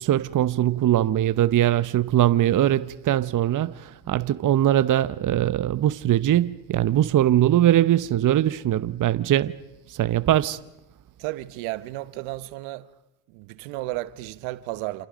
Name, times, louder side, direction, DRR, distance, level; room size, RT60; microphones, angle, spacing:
voice 1, 0.0-9.5 9.9-10.6, right 12 dB, 40° right, 0.9 m, -21 dB
voice 2, 11.2-12.9 13.3-15.1, right 18 dB, 75° right, 1.2 m, -33 dB
28.5 x 28.0 x 5.2 m
supercardioid pair, 85°, 48 cm